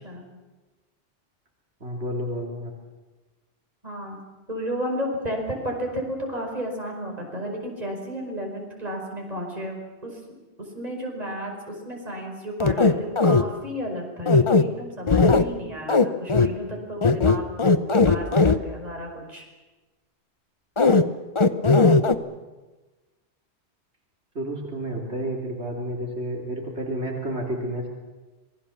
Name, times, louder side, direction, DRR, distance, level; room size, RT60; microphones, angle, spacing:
voice 1, 1.8-2.7 24.4-27.9, right 1 dB, 75° right, -1 dB, 3.6 m, -30 dB
voice 2, 3.8-4.2 4.5-10.2 10.7-17.5 17.9-19.4, equal, 35° right, 0 dB, 5.3 m, -33 dB
sound 1, 12.6-13.4 14.3-14.6 15.1-15.4 15.9-16.0 16.3-16.5 17.0-18.6 20.8-21.0 21.4-22.1, left 3 dB, 30° left, 0.9 m, -17 dB
27.0 x 21.5 x 7.3 m, 1.2 s
omnidirectional pair, 1.1 m